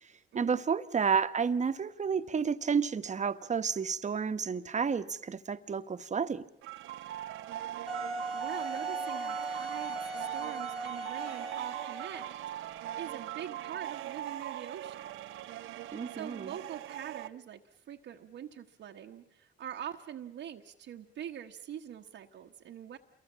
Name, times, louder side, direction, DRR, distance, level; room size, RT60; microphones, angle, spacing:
voice 1, 0.0-6.5 15.9-16.5, right 6 dB, 35° right, 1.2 m, -31 dB
sound 1, 6.6-17.3, right 12 dB, 90° right, 0.9 m, -40 dB
Wind instrument woodwind instrument, 7.9-12.4, right 2 dB, ahead, 2.1 m, -38 dB
voice 2, 8.3-15.1 16.1-17.6 17.9-23.0, right 9 dB, 70° right, 1.3 m, -44 dB
28.5 x 23.0 x 7.4 m
cardioid pair, 90°, 20 cm